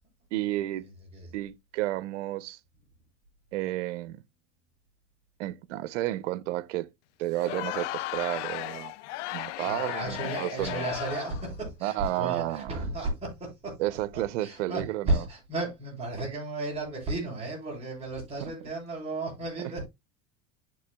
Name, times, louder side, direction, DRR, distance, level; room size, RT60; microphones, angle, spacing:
voice 1, 0.3-0.9 1.3-2.6 3.5-4.2 5.4-6.9 7.2-8.9 9.3-10.9 11.8-12.8 13.8-15.2, right 15 dB, 80° right, 0.8 m, -31 dB
Crowd, 7.3-11.5, left 19 dB, 80° left, 0.5 m, -35 dB
voice 2, 9.6-19.9, right 2 dB, 15° right, 6.6 m, -34 dB
12.0 x 6.8 x 2.2 m
supercardioid pair, 155°, 36 cm